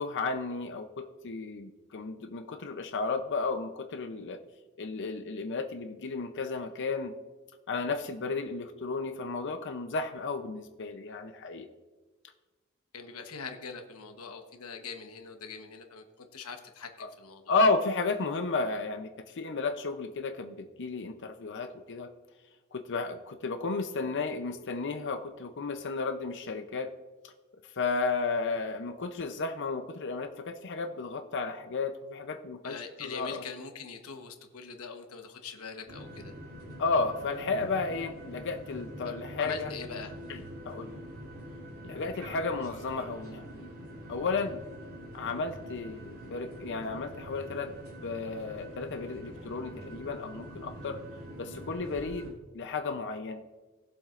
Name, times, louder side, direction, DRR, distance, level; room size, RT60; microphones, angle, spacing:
voice 1, 0.0-4.4 4.8-7.1 7.7-11.7 17.0-17.1 17.5-22.1 22.7-26.9 27.2-27.3 27.8-33.4 36.8-39.7 40.3-40.9 41.8-43.8 44.1-44.6 45.1-47.7 48.0-51.0 51.4-52.3 52.5-53.4, left 4 dB, 55° left, 6 dB, 0.6 m, -33 dB
voice 2, 12.9-17.5 32.6-36.3 39.4-40.2, left 5 dB, 85° left, 5 dB, 1.1 m, -42 dB
sound 1, 35.9-52.3, equal, 70° right, 3.0 m, -45 dB
19.5 x 7.4 x 2.5 m, 1.3 s
head